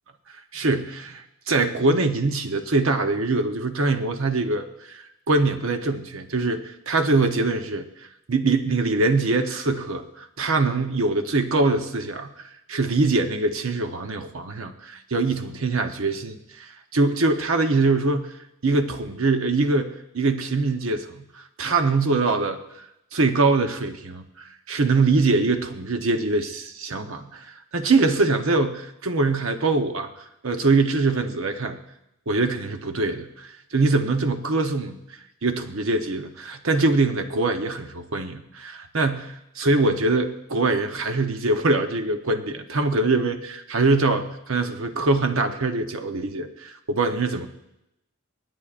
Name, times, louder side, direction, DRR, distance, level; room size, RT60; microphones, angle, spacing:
voice 1, 0.5-7.9 8.3-18.3 18.6-22.9 23.1-31.8 32.3-35.0 35.4-47.5, right 3 dB, 70° right, 7 dB, 0.9 m, -23 dB
25.5 x 9.5 x 2.5 m, 0.86 s
head